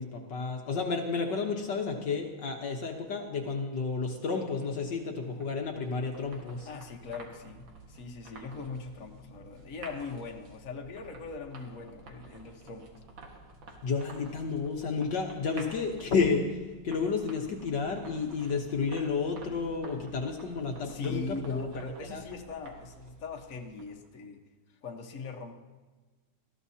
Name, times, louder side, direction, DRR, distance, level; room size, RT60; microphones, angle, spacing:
voice 1, 0.0-6.7 13.8-16.5 16.8-21.7 22.1-22.2, left 4 dB, 60° left, 2 dB, 1.7 m, -31 dB
sound 1, 5.1-24.1, right 3 dB, 65° right, 2.4 m, -51 dB
voice 2, 6.6-13.0 20.8-24.4 24.8-25.5, left 4 dB, 45° left, 1 dB, 1.4 m, -40 dB
20.0 x 14.5 x 2.8 m, 1.3 s
omnidirectional pair, 2.3 m